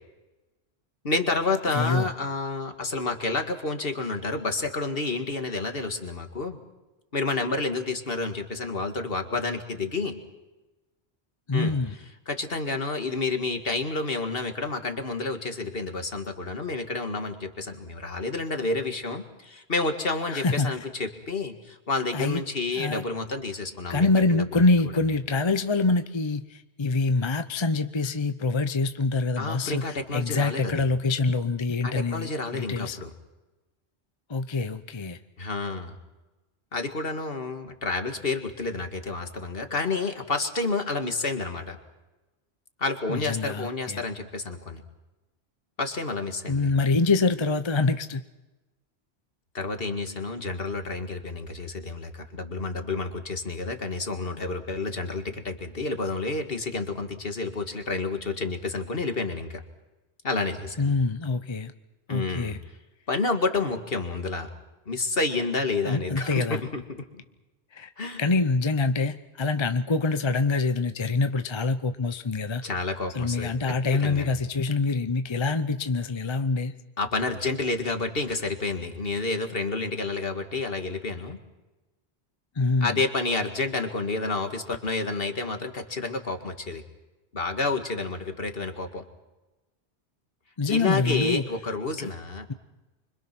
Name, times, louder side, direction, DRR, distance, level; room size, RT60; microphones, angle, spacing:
voice 1, 1.0-6.6 7.1-10.2 11.5-11.8 12.3-24.6 29.4-30.9 31.8-33.1 35.4-36.0 36.7-41.8 42.8-44.8 45.8-46.7 49.5-59.6 60.2-60.9 62.1-62.6 63.1-64.5 64.9-66.8 67.1-67.2 68.0-68.2 72.6-73.5 74.0-74.3 77.0-81.4 82.8-86.8 87.3-89.0 90.7-92.5, left 3 dB, 60° left, 6 dB, 2.2 m, -29 dB
voice 2, 1.7-2.1 11.5-11.9 20.3-20.7 22.1-22.4 22.8-23.0 23.9-33.0 34.3-35.2 43.1-44.0 46.5-48.2 60.8-61.7 62.1-62.6 65.8-66.6 67.7-67.9 68.2-72.6 73.1-76.7 82.6-83.0 90.6-91.4 92.0-92.1, left 3 dB, 30° left, 10 dB, 0.8 m, -25 dB
25.5 x 24.5 x 6.1 m, 1.1 s
omnidirectional pair, 1.1 m